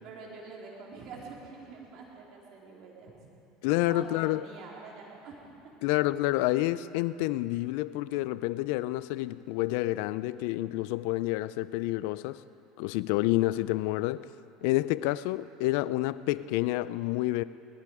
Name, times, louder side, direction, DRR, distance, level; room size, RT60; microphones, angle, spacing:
voice 1, 0.0-3.1 3.9-5.4 5.6-5.7, right 4 dB, 60° right, 4.0 m, -46 dB
voice 2, 3.6-4.4 5.8-12.4 12.8-14.3 14.6-17.4, left 17 dB, 70° left, 0.4 m, -29 dB
19.5 x 14.5 x 4.8 m
hypercardioid pair, 90°, 0 cm